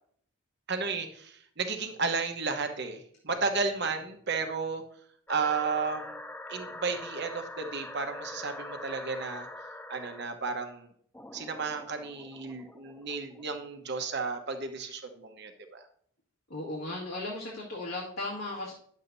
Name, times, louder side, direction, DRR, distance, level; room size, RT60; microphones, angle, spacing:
voice 1, 0.7-4.8 5.3-6.2 6.5-9.5 9.9-10.9 11.3-15.8, right 4 dB, 55° right, 6 dB, 1.1 m, -33 dB
sound 1, 5.3-10.3 11.1-13.6, left 1 dB, 10° left, 0.4 m, -44 dB
voice 2, 16.5-18.7, left 2 dB, 70° left, -6 dB, 2.0 m, -36 dB
10.5 x 7.3 x 2.7 m, 0.62 s
head